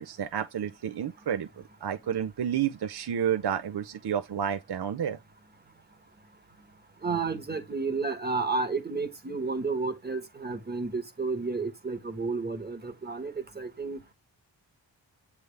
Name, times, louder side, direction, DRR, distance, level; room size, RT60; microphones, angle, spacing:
voice 1, 0.0-5.2, right 9 dB, 60° right, 0.6 m, -30 dB
voice 2, 7.0-14.0, right 4 dB, 20° right, 1.3 m, -31 dB
7.9 x 3.5 x 3.3 m
wide cardioid pair, 80°, 45 cm